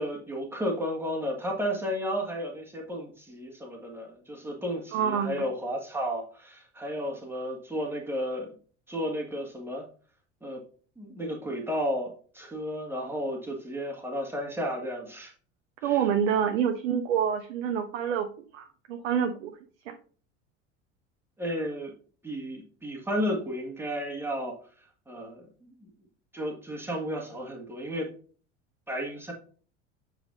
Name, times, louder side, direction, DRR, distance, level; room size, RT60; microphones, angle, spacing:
voice 1, 0.0-8.5 8.9-9.8 10.4-10.6 11.0-15.3 15.8-16.0 21.4-21.9 22.2-24.6 25.1-25.9 26.3-28.1 28.9-29.3, equal, 5° right, 0 dB, 1.8 m, -33 dB
voice 2, 4.9-5.5 15.8-18.3 18.5-19.6 19.9-20.0, right 8 dB, 65° right, 6 dB, 0.7 m, -27 dB
7.2 x 4.9 x 2.6 m, 0.41 s
figure-of-eight pair, 70°, 37 cm